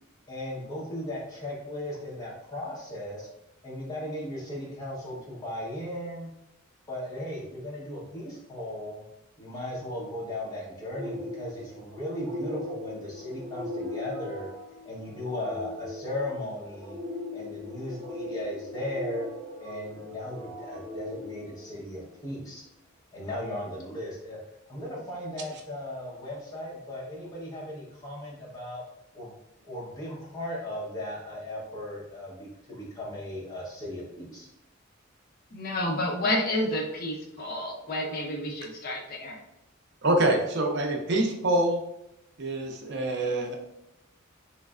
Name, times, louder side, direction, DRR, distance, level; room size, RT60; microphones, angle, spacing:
voice 1, 0.3-3.3 3.6-6.3 6.9-9.1 9.4-14.5 14.8-17.0 17.3-19.3 19.6-22.6 23.1-24.4 24.7-28.8 29.1-29.3 29.6-34.5, left 1 dB, 15° left, -5 dB, 0.9 m, -37 dB
sound 1, 10.9-22.2, left 1 dB, 40° right, 1.1 m, -39 dB
voice 2, 35.5-39.4, left 1 dB, 45° left, 0 dB, 0.5 m, -30 dB
voice 3, 40.0-41.8 42.4-43.6, right 1 dB, 55° right, 2 dB, 0.5 m, -25 dB
3.1 x 3.1 x 2.4 m, 0.83 s
head